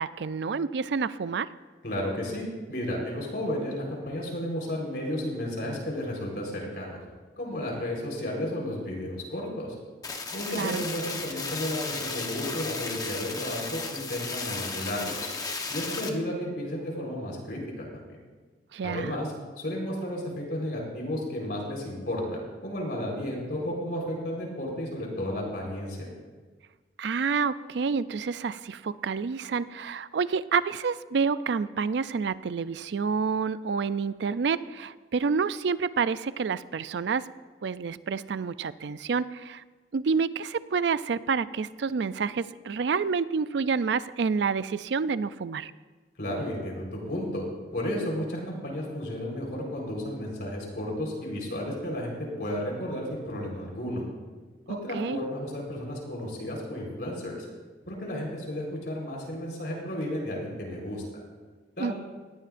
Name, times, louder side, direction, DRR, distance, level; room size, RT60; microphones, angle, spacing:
voice 1, 0.0-1.5 10.5-10.8 18.7-19.2 27.0-37.2 37.6-39.6 39.9-45.7 54.7-55.2 61.8-61.9, right 5 dB, 75° right, 16 dB, 0.4 m, -28 dB
voice 2, 1.8-7.0 7.4-9.7 10.3-15.2 15.7-18.1 18.8-26.1 46.2-47.4 47.7-54.0 54.7-57.4 57.9-61.0 61.8-61.9, left 1 dB, 60° left, -1 dB, 4.2 m, -33 dB
sound 1, 10.0-16.1, left 4 dB, 20° left, 1.1 m, -34 dB
19.0 x 14.5 x 2.6 m, 1.4 s
head